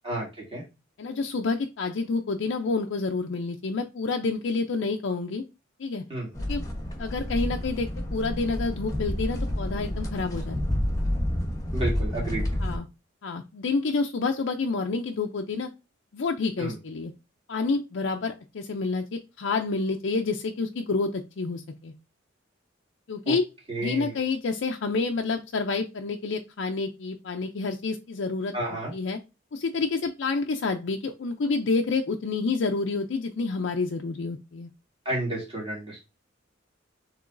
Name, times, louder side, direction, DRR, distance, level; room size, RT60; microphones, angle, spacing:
voice 1, 0.0-0.6 6.1-6.3 11.7-12.5 16.6-16.8 23.3-23.4 23.7-24.1 28.5-28.9 35.0-36.1, right 1 dB, 30° right, -4 dB, 2.2 m, -31 dB
voice 2, 1.0-5.4 5.8-6.0 6.5-6.6 7.0-10.8 12.6-12.9 13.2-15.7 16.1-17.1 17.5-21.9 23.1-23.4 23.8-28.5 28.9-29.2 29.5-34.7, left 4 dB, 65° left, 3 dB, 0.5 m, -28 dB
sound 1, 6.3-12.8, left 1 dB, 20° left, 1.0 m, -29 dB
6.7 x 3.0 x 2.5 m, 0.27 s
head